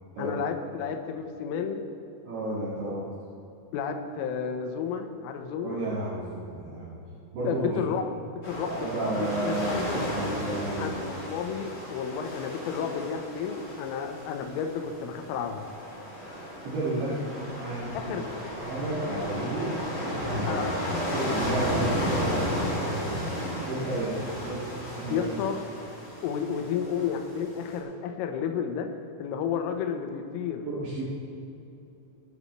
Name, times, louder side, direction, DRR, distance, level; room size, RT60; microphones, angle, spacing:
voice 1, 0.2-1.9 3.7-5.8 7.4-8.1 8.5-10.0 10.8-15.7 18.0-18.5 20.5-20.8 25.1-25.6 26.2-28.9 29.2-30.7, left 7 dB, 90° left, 5 dB, 3.4 m, -32 dB
voice 2, 2.3-3.1 5.6-7.0 7.3-7.7 8.7-10.9 16.6-17.2 17.6-18.1 18.7-20.6 21.1-22.5 22.9-23.3 23.7-25.3 30.6-31.0, right 2 dB, 65° right, -9 dB, 4.1 m, -32 dB
sound 1, 8.4-27.8, equal, 20° left, 2.6 m, -33 dB
20.5 x 9.7 x 3.2 m, 2.8 s
omnidirectional pair, 5.7 m